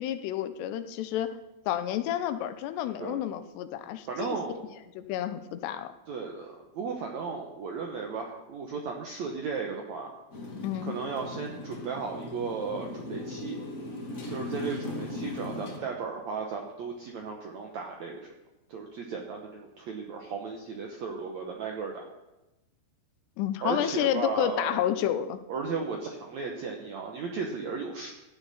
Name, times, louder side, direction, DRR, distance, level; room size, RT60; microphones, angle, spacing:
voice 1, 0.0-1.4 1.7-4.4 5.0-5.9 10.6-11.0 23.4-25.4, left 11 dB, 85° left, 10 dB, 2.9 m, -30 dB
voice 2, 4.1-4.6 6.1-10.1 10.8-13.6 14.3-18.3 18.7-22.0 23.6-24.8 25.5-28.1, right 5 dB, 75° right, 1 dB, 1.6 m, -35 dB
Motorcycle, 10.3-15.8, left 2 dB, 55° left, 0.8 m, -38 dB
16.0 x 12.0 x 4.2 m, 1.0 s
omnidirectional pair, 4.8 m